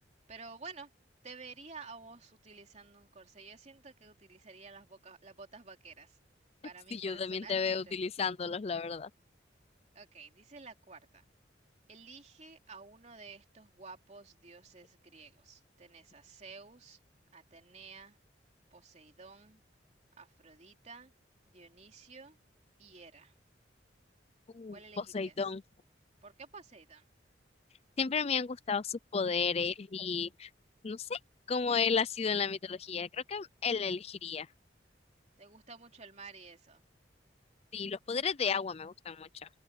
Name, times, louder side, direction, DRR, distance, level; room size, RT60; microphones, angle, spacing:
voice 1, 0.3-0.9 1.2-6.2 6.6-8.0 9.9-11.3 11.9-17.0 17.3-18.2 18.7-19.6 20.2-21.1 21.5-22.4 22.8-23.3 24.7-25.4 26.2-27.1 35.4-36.8, right 4 dB, 40° right, 3.0 m, -52 dB
voice 2, 6.9-9.1 24.5-25.6 28.0-30.5 30.8-31.2 31.5-34.5 37.7-39.5, left 5 dB, 35° left, 0.4 m, -33 dB
head